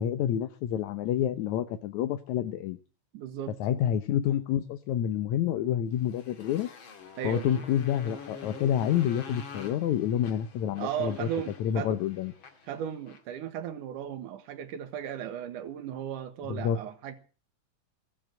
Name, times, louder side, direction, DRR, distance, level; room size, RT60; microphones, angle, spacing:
voice 1, 0.0-2.8 3.6-6.7 7.2-11.3 11.6-12.3 16.5-16.8, left 10 dB, 75° left, 2.2 m, -28 dB
voice 2, 3.1-3.6 7.2-7.7 10.8-12.0 12.6-17.2, right 9 dB, 85° right, 2.8 m, -36 dB
Motorcycle, 5.9-13.3, left 5 dB, 45° left, 2.5 m, -46 dB
20.5 x 7.9 x 7.8 m
omnidirectional pair, 3.6 m